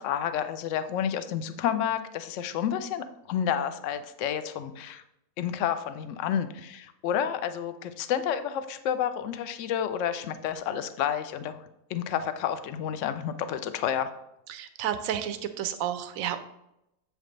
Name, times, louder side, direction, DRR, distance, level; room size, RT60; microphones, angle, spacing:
voice 1, 0.0-5.0 5.4-11.6 11.9-14.1, left 9 dB, 70° left, 11 dB, 0.7 m, -30 dB
voice 2, 14.5-16.4, right 10 dB, 70° right, 10 dB, 0.9 m, -31 dB
7.5 x 5.0 x 3.1 m, 0.85 s
omnidirectional pair, 1.7 m